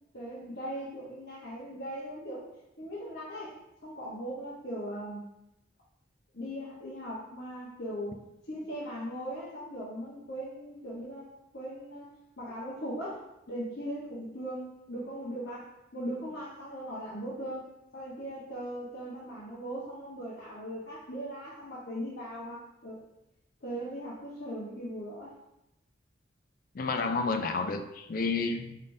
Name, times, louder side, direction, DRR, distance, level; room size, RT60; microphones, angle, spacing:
voice 1, 0.1-2.4 2.8-5.2 6.3-8.2 8.5-11.3 11.5-12.1 12.4-17.6 17.9-23.0 23.6-25.3, equal, 65° left, -9 dB, 1.1 m, -39 dB
voice 2, 26.7-28.8, left 4 dB, 45° left, 6 dB, 0.4 m, -30 dB
5.3 x 3.4 x 2.6 m, 0.87 s
head